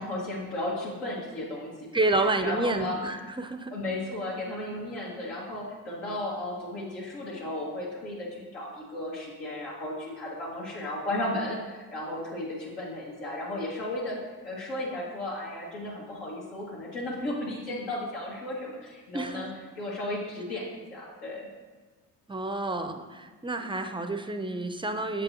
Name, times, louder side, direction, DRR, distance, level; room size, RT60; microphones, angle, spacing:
voice 1, 0.0-1.8 2.1-3.4 3.7-19.5 19.8-21.5, left 1 dB, 80° left, -6 dB, 1.9 m, -34 dB
voice 2, 1.9-3.7 19.1-19.4 22.3-25.2, right 2 dB, 10° right, 7 dB, 0.5 m, -29 dB
7.2 x 5.3 x 2.8 m, 1.4 s
hypercardioid pair, 55°, 43 cm